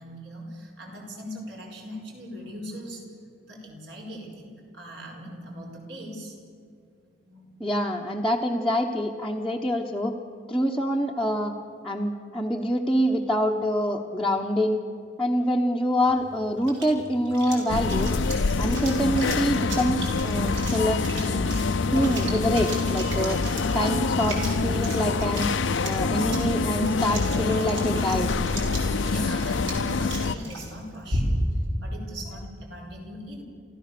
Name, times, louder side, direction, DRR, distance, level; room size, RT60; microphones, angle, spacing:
voice 1, 0.0-3.1 3.4-6.3 7.2-7.5 28.9-31.4 31.8-33.4, equal, 65° right, 0 dB, 4.9 m, -40 dB
voice 2, 7.6-10.1 10.5-11.5 11.8-14.8 15.2-18.2 18.6-21.5 21.9-23.4 23.7-25.5 25.8-28.3, equal, ahead, -4 dB, 0.9 m, -26 dB
sound 1, 16.1-31.6, right 1 dB, 85° right, 5.0 m, -37 dB
sound 2, 17.7-30.4, left 4 dB, 80° left, 0.6 m, -25 dB
28.0 x 14.5 x 6.8 m, 2.4 s
head